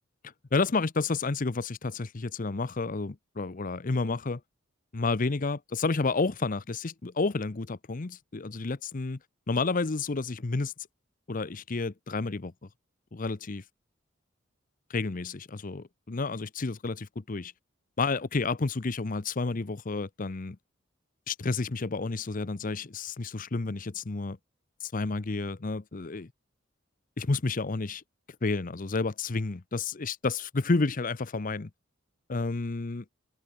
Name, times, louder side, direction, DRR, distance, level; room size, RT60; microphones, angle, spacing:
voice 1, 0.5-4.4 4.9-9.2 9.5-10.7 11.3-12.5 13.1-13.6 14.9-17.5 18.0-20.6 21.3-24.4 24.8-26.3 27.2-28.0 28.4-31.7 32.3-33.0, left 3 dB, 40° left, 0.7 m, -30 dB
head